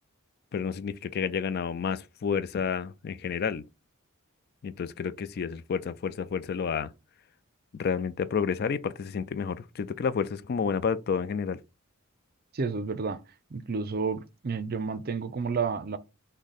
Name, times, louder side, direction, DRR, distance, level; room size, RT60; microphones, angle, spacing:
voice 1, 0.5-3.6 4.6-6.9 7.7-11.6, left 6 dB, 50° left, 0.3 m, -30 dB
voice 2, 12.5-13.2 13.5-16.0, right 5 dB, 45° right, 0.5 m, -30 dB
6.1 x 2.2 x 4.0 m
head